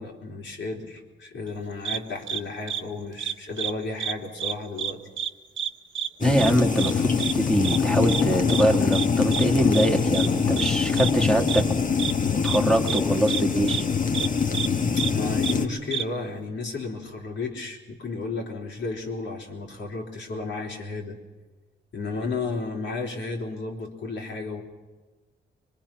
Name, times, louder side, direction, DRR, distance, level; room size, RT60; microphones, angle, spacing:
voice 1, 0.0-5.0 15.0-21.2 21.9-24.6, left 3 dB, 75° left, 0 dB, 3.8 m, -33 dB
sound 1, 1.9-2.0 2.3-2.4 2.7-2.8 3.2-3.7 4.0-4.1 4.4-4.9 5.2-5.3 5.6-5.7 6.0-6.1 6.4-6.5 6.8-6.9 7.2-7.3 7.6-7.8 8.1-8.2 8.5-8.6 8.9-9.1 9.3-9.5 9.7-9.9 10.1-10.3 10.6-10.7 11.0-11.1 11.5-11.6 12.0-12.1 12.5-12.6 12.9-13.0 13.3-13.4 13.7-13.8 14.1-14.3 14.5-14.7 15.0-15.1 15.4-15.5 15.9-16.0, right 9 dB, 80° right, 0.9 m, -28 dB
sound 2, 6.2-15.7, left 5 dB, 45° left, 1.4 m, -24 dB
voice 2, 6.2-11.9 12.4-13.9, equal, 5° left, 4 dB, 1.8 m, -24 dB
24.0 x 22.5 x 6.1 m, 1.3 s
cardioid pair, 115°, 19 cm